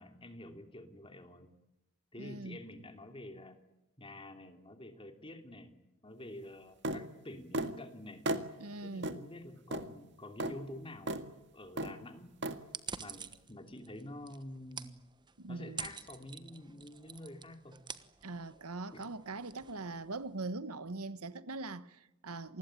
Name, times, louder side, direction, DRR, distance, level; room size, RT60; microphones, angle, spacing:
voice 1, 0.0-1.5 2.1-3.6 4.0-5.7 6.0-8.2 8.8-11.2 11.5-12.4 13.0-14.9 15.5-17.8 18.9-19.1, left 1 dB, 25° left, 2.9 m, -48 dB
voice 2, 2.2-2.6 8.6-9.1 15.4-15.9 18.2-22.6, right 3 dB, 85° right, 1.2 m, -42 dB
sound 1, 6.8-7.0 7.5-7.7 8.3-8.5 9.0-9.2 9.7-9.9 10.4-10.5 11.1-11.2 11.8-12.0 12.4-12.6, right 1 dB, 50° right, 1.9 m, -34 dB
sound 2, 12.6-20.4, right 6 dB, 20° right, 1.1 m, -48 dB
27.5 x 20.5 x 8.9 m
head